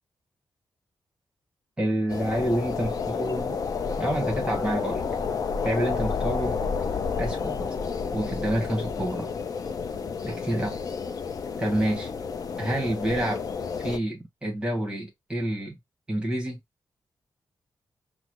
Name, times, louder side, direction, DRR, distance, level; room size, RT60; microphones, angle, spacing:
voice 1, 1.8-3.6 4.0-5.0 5.6-6.6 7.2-7.7 8.1-9.3 10.2-10.8 11.6-12.1 12.6-13.4 13.8-15.8 16.1-16.6, right 1 dB, 15° right, 1.3 m, -28 dB
sound 1, 2.1-14.0, left 5 dB, 55° left, 0.6 m, -30 dB
5.9 x 2.1 x 3.0 m
wide cardioid pair, 130°, 7 cm